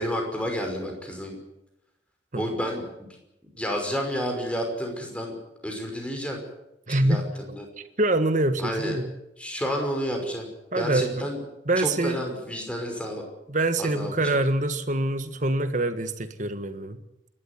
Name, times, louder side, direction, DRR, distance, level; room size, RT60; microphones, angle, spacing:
voice 1, 0.0-1.4 2.4-3.1 3.5-5.4 5.6-6.4 6.9-7.7 8.6-9.0 9.4-10.5 10.7-11.4 11.8-13.2 13.8-14.2, equal, 5° left, 5.6 m, -30 dB
voice 2, 6.9-7.2 8.0-9.1 10.7-11.2 11.7-12.2 13.5-17.0, right 2 dB, 45° right, 1.7 m, -25 dB
28.0 x 13.0 x 9.8 m
head